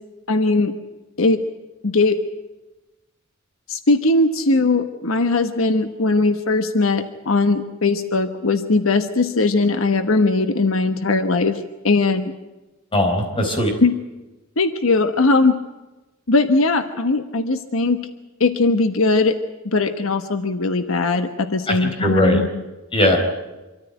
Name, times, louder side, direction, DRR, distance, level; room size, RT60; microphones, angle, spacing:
voice 1, 0.3-0.7 1.2-1.4 1.8-2.2 3.7-12.3 13.8-13.9 14.6-15.6 16.3-18.0 18.4-19.4 19.6-22.6, left 3 dB, 85° left, 8 dB, 1.2 m, -19 dB
voice 2, 12.9-13.7 21.7-22.4 22.9-23.2, left 1 dB, 25° left, 2 dB, 4.4 m, -19 dB
25.5 x 14.0 x 9.1 m, 1.1 s
head